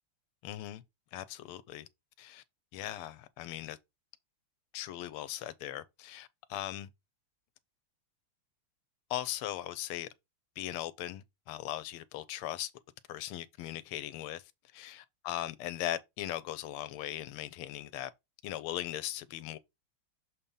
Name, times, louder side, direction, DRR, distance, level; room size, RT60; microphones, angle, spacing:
voice 1, 0.4-0.8 1.1-1.9 2.2-2.4 2.7-3.8 4.7-6.9 9.1-10.1 10.6-12.7 13.1-18.1 18.4-19.6, left 13 dB, 85° left, 1.5 m, -39 dB
6.8 x 2.9 x 5.3 m
omnidirectional pair, 2.4 m